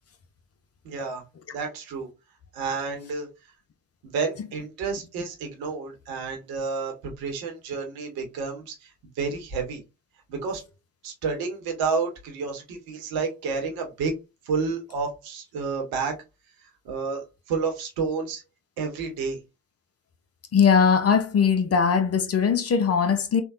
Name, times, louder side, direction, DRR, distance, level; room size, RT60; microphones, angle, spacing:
voice 1, 0.8-1.2 1.5-2.1 2.5-3.3 4.0-9.8 10.3-10.6 11.0-14.1 14.4-16.2 16.8-18.4 18.8-19.4, right 4 dB, 65° right, 1.1 m, -30 dB
voice 2, 20.5-23.4, left 6 dB, 35° left, 0.6 m, -20 dB
3.4 x 2.2 x 2.5 m
hypercardioid pair, 45°, 40 cm